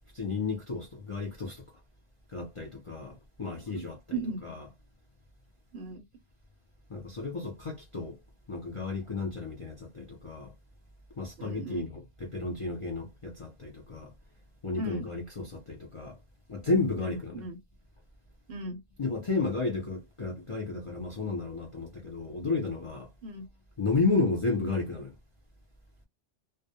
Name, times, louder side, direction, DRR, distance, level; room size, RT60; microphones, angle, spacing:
voice 1, 0.1-1.6 2.3-4.6 6.9-8.2 8.5-10.5 11.2-14.1 14.6-16.2 16.5-17.4 19.0-23.1 23.8-25.1, left 3 dB, 40° left, 0.4 m, -32 dB
voice 2, 3.7-4.4 5.7-6.0 11.4-11.9 14.7-15.1 17.0-17.6 18.5-18.8 23.2-23.4, right 2 dB, 65° right, 0.7 m, -37 dB
2.3 x 2.1 x 2.6 m
omnidirectional pair, 1.2 m